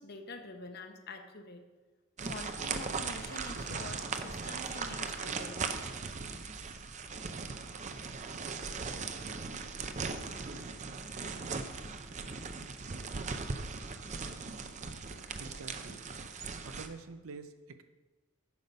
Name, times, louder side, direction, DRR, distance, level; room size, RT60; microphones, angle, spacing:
voice 1, 0.0-1.6 2.2-5.6, left 2 dB, 50° left, 6 dB, 0.9 m, -46 dB
sound 1, 2.2-16.9, right 4 dB, 35° right, 0.6 m, -39 dB
voice 2, 15.4-16.0 16.6-17.8, right 4 dB, 75° right, 9 dB, 0.5 m, -47 dB
9.5 x 6.9 x 5.2 m, 1.2 s
head